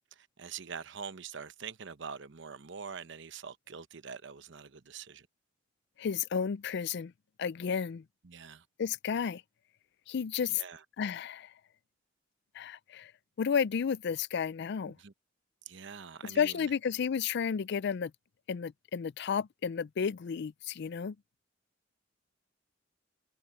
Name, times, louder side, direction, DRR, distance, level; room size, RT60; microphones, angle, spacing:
voice 1, 0.0-5.3 8.2-8.6 10.5-10.8 15.0-15.1 15.7-16.7, right 6 dB, 70° right, 0.9 m, -44 dB
voice 2, 6.0-7.1 7.4-8.0 8.8-9.4 10.1-10.6 11.0-11.5 12.6-13.1 13.4-15.0 16.2-18.1 18.5-21.2, left 7 dB, 60° left, 0.4 m, -32 dB
head